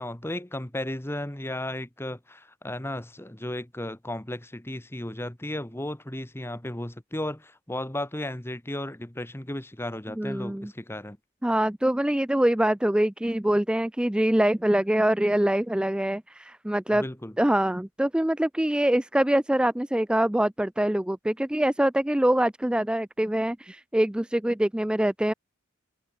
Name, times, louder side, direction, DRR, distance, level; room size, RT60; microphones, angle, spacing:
voice 1, 0.0-11.2 16.9-17.4, left 1 dB, 10° left, 1.4 m, -34 dB
voice 2, 10.2-10.7 11.4-17.0 17.4-25.3, right 1 dB, 5° right, 0.3 m, -24 dB
head